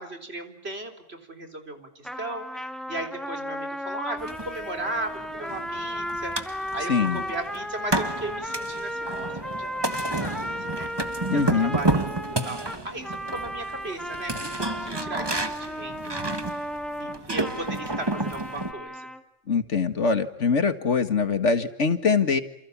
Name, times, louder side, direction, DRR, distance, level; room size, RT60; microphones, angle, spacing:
voice 1, 0.0-10.9 11.3-16.7 17.0-19.1, right 2 dB, 50° right, 5 dB, 4.3 m, -37 dB
sound 1, 2.0-19.2, equal, ahead, 2.2 m, -35 dB
sound 2, 4.2-18.7, right 2 dB, 20° right, 1.6 m, -31 dB
voice 2, 6.9-7.2 11.3-11.8 19.5-22.4, left 5 dB, 65° left, 10 dB, 2.1 m, -23 dB
29.5 x 27.5 x 7.3 m, 0.81 s
omnidirectional pair, 1.3 m